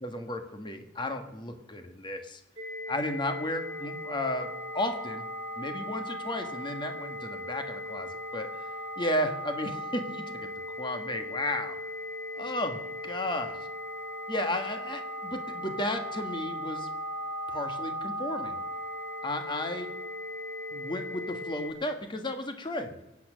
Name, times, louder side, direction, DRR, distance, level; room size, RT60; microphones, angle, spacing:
voice 1, 0.0-2.4 2.9-5.3 5.6-8.7 9.0-10.5 10.8-11.7 12.4-12.8 13.0-13.5 14.3-16.9 17.5-18.6 19.2-19.9 20.7-23.0, left 1 dB, 25° left, 6 dB, 1.5 m, -33 dB
sound 1, 2.6-21.7, left 1 dB, 25° right, 2.6 m, -38 dB
23.5 x 8.6 x 6.3 m, 0.95 s
head